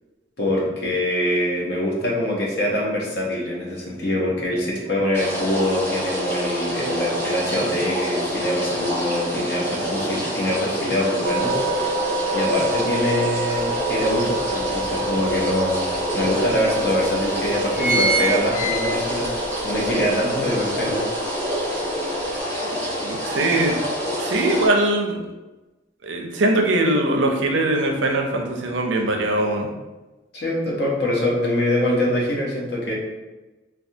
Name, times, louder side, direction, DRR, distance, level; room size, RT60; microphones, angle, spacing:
voice 1, 0.4-11.5 12.3-15.9 16.1-19.3 19.6-21.0 30.3-32.9, left 1 dB, 60° left, -3 dB, 0.8 m, -24 dB
sound 1, 5.1-24.7, equal, 15° left, 1.3 m, -27 dB
sound 2, 11.2-22.4, right 3 dB, 30° right, 0.5 m, -30 dB
sound 3, 13.6-13.7 14.1-15.3 15.9-16.0 16.3-16.4 17.0-17.3 17.5-19.3 19.8-19.9, right 3 dB, 35° left, 0.3 m, -24 dB
voice 2, 23.0-23.8 24.2-25.2 26.0-29.7, right 1 dB, 80° right, 2 dB, 0.5 m, -21 dB
3.2 x 2.3 x 2.7 m, 1.1 s
head